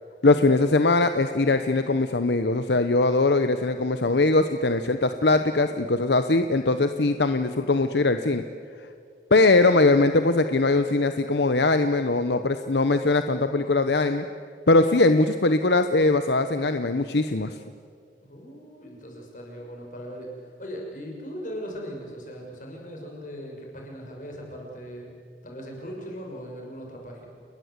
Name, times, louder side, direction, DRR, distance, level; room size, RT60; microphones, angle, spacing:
voice 1, 0.2-8.4 9.3-14.2 14.7-17.6, left 2 dB, 75° left, 9 dB, 0.9 m, -21 dB
voice 2, 18.2-25.1 25.4-27.3, equal, 45° left, 0 dB, 6.3 m, -39 dB
29.5 x 21.0 x 8.2 m, 2.2 s
head